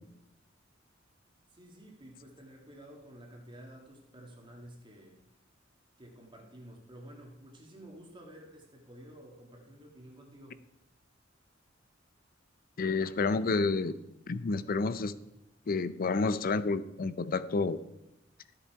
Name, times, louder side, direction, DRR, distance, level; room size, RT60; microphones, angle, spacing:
voice 1, 1.5-5.2 6.0-10.6, right 1 dB, 25° right, 1 dB, 1.8 m, -51 dB
voice 2, 12.8-13.9 14.3-15.1 15.7-17.8, left 3 dB, 45° left, 15 dB, 0.5 m, -29 dB
13.0 x 7.8 x 4.7 m, 0.89 s
head